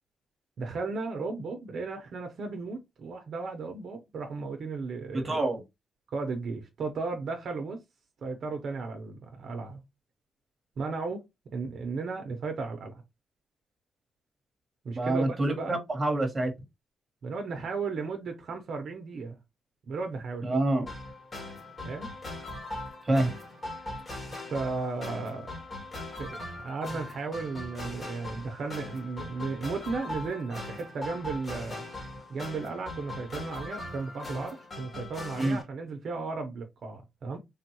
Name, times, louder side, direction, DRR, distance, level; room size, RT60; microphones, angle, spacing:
voice 1, 0.6-5.4 6.1-7.8 8.2-9.8 10.8-11.3 11.5-12.9 14.8-15.7 17.2-19.4 19.9-20.5 21.8-22.1 24.5-25.5 26.2-31.8 32.3-37.4, right 4 dB, 60° right, 0.7 m, -35 dB
voice 2, 5.1-5.6 14.9-16.5 20.4-20.9 23.0-23.3 35.4-35.6, right 2 dB, 25° right, 1.1 m, -26 dB
sound 1, 20.9-35.6, left 2 dB, 35° left, 1.2 m, -40 dB
3.4 x 2.2 x 2.9 m
cardioid pair, 120°, 0 cm